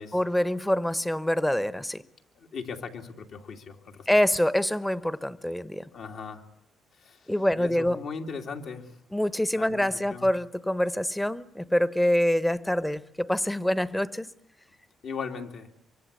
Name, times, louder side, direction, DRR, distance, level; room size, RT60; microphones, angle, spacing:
voice 1, 0.1-2.0 4.1-5.9 7.3-8.0 9.1-14.3, left 1 dB, 5° left, 16 dB, 0.9 m, -25 dB
voice 2, 2.3-4.1 5.9-6.4 7.0-8.9 9.6-10.3 15.0-15.7, left 5 dB, 65° left, 2 dB, 2.8 m, -38 dB
24.5 x 24.0 x 8.3 m, 0.74 s
cardioid pair, 90°, 0 cm